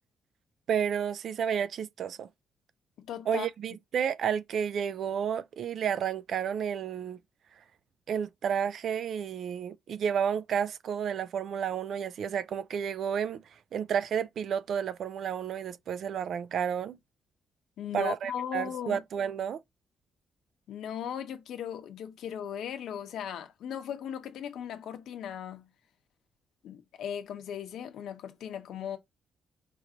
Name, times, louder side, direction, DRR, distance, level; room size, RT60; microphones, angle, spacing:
voice 1, 0.7-2.3 3.3-7.2 8.1-17.0 17.9-19.6, right 8 dB, 55° right, 0.3 m, -31 dB
voice 2, 3.0-3.5 17.8-19.0 20.7-25.7 26.6-29.0, left 9 dB, 75° left, 0.8 m, -37 dB
4.5 x 2.5 x 2.8 m
cardioid pair, 145°, 0 cm